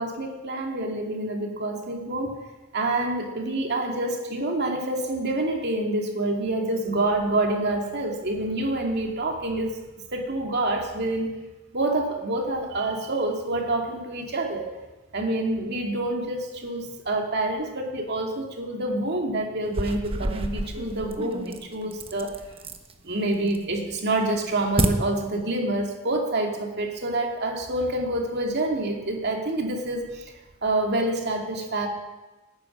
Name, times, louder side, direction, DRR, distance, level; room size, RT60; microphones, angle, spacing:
voice 1, 0.0-2.4 2.7-9.8 10.1-11.3 11.7-14.7 15.1-22.4 23.0-30.3 30.6-31.9, right 2 dB, 55° right, 1 dB, 2.6 m, -27 dB
sound 1, 19.6-22.9 23.3-23.8 24.2-24.9, right 1 dB, 30° right, 1.1 m, -29 dB
18.0 x 9.6 x 6.2 m, 1.1 s
head